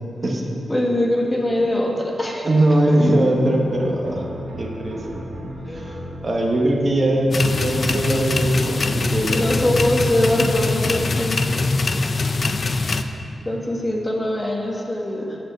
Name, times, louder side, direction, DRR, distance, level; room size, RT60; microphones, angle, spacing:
voice 1, 0.7-2.4 5.7-6.1 9.3-11.4 13.4-15.4, left 1 dB, 25° left, -1 dB, 1.6 m, -22 dB
voice 2, 2.4-4.3 4.6-5.2 5.7-5.8 6.2-9.5, right 1 dB, 45° right, -1 dB, 1.4 m, -20 dB
sound 1, 3.3-10.0, equal, 80° right, 1.6 m, -37 dB
sound 2, 7.3-13.0, left 3 dB, 50° left, 0.5 m, -22 dB
7.8 x 6.8 x 6.8 m, 2.9 s
cardioid pair, 65°, 0 cm